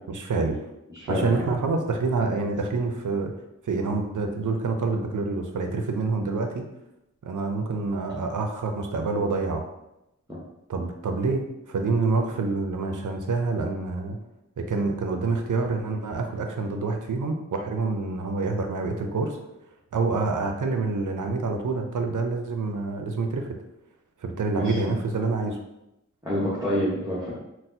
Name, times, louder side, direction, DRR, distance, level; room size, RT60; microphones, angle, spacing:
voice 1, 0.1-0.6 1.1-3.3 3.6-6.7 7.2-9.6 10.7-14.2 14.6-19.4 19.9-23.6 24.2-25.6, right 3 dB, 90° right, 4 dB, 0.5 m, -27 dB
voice 2, 0.9-1.4 10.3-10.4 24.6-24.9 26.2-27.3, equal, 10° right, -8 dB, 0.9 m, -27 dB
4.0 x 2.1 x 2.6 m, 0.89 s
wide cardioid pair, 45°, 30 cm